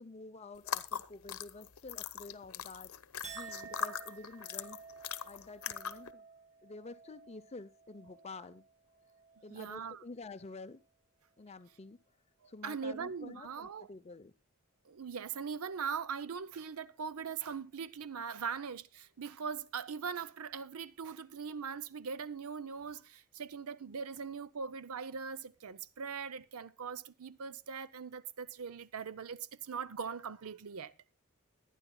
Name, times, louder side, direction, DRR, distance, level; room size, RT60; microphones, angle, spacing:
voice 1, 0.0-3.0 3.3-4.8 5.2-6.2 6.6-8.6 9.4-10.8 11.4-12.0 12.5-14.3, left 3 dB, 30° left, 0.6 m, -49 dB
sound 1, 0.6-6.1, left 8 dB, 75° left, 0.8 m, -41 dB
Chink clink, 3.2-9.8 10.2-10.8, right 5 dB, 35° right, 1.6 m, -53 dB
voice 2, 9.5-10.0 12.4-13.9 14.8-30.9, right 6 dB, 80° right, 0.6 m, -41 dB
21.5 x 10.0 x 2.2 m
head